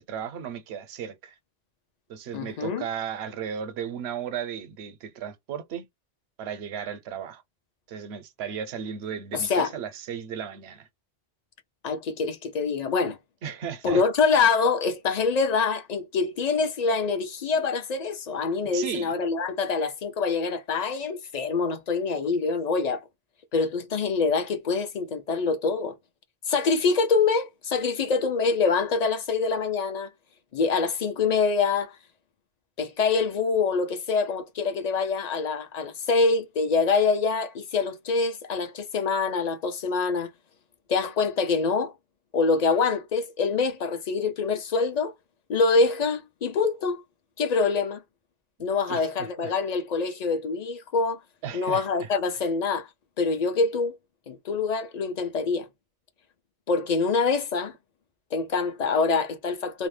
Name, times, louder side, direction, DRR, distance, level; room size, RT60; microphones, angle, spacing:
voice 1, 0.0-1.4 2.1-5.8 6.4-7.4 7.9-10.9 13.4-14.0 18.7-19.1 48.9-49.5 51.4-52.1, right 8 dB, 80° right, 0.9 m, -35 dB
voice 2, 2.3-2.9 9.3-9.7 11.8-13.2 13.8-23.0 23.5-25.9 26.5-30.1 30.5-32.0 32.8-40.3 40.9-41.9 42.3-45.1 45.5-47.0 47.4-48.0 48.6-51.2 51.5-52.9 53.2-54.0 54.3-55.7 56.7-57.7 58.3-59.9, left 4 dB, 50° left, 0.5 m, -25 dB
2.6 x 2.0 x 3.1 m
omnidirectional pair, 1.1 m